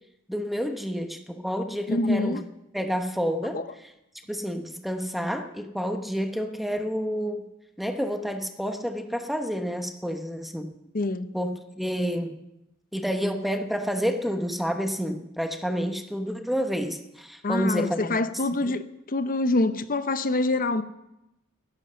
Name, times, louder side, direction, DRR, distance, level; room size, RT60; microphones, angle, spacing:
voice 1, 0.3-2.4 2.7-3.6 4.3-7.5 7.8-10.7 11.3-12.3 12.9-18.2, equal, ahead, 1.0 m, -29 dB
voice 2, 1.9-2.4 3.5-3.6 10.9-11.3 17.4-18.8 19.1-20.8, left 2 dB, 40° left, 0.8 m, -25 dB
16.0 x 11.0 x 6.9 m
head